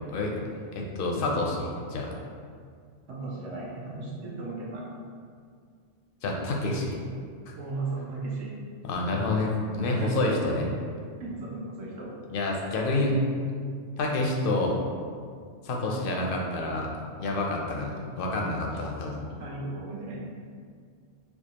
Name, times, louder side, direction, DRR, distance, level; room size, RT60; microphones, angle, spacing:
voice 1, 0.7-2.1 6.2-7.0 7.5-7.6 8.8-10.7 12.3-13.2 14.0-14.8 15.6-16.9 17.2-19.2, left 2 dB, 60° left, 0 dB, 0.6 m, -28 dB
voice 2, 3.1-4.9 7.6-8.5 10.0-10.4 11.2-12.1 17.7-17.9 19.4-20.2, right 3 dB, 75° right, -5 dB, 1.1 m, -36 dB
4.5 x 2.3 x 2.8 m, 2.1 s
omnidirectional pair, 1.2 m